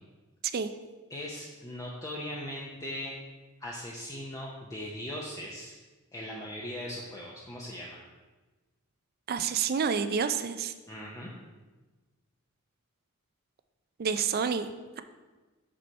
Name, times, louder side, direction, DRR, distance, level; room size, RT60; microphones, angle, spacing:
voice 1, 1.1-3.1 3.6-5.8 6.1-8.0 10.9-11.3, left 1 dB, 15° left, -3 dB, 0.7 m, -39 dB
voice 2, 9.3-10.7 14.0-14.7, right 6 dB, 45° right, 10 dB, 0.4 m, -28 dB
6.3 x 4.3 x 5.3 m, 1.2 s
head